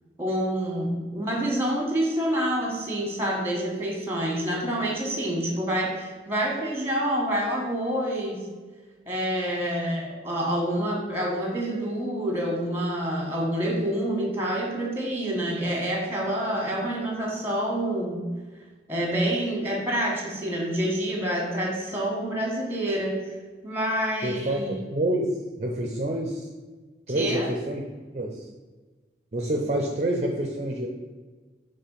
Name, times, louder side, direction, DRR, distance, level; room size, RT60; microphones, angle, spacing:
voice 1, 0.2-8.4 9.1-18.2 18.9-23.2 23.6-24.7 27.1-27.5, right 1 dB, 15° right, -2 dB, 1.6 m, -27 dB
voice 2, 24.2-26.5 27.1-27.8 28.1-28.5 29.3-30.9, right 1 dB, 40° right, 1 dB, 0.6 m, -27 dB
6.0 x 3.3 x 5.6 m, 1.3 s
head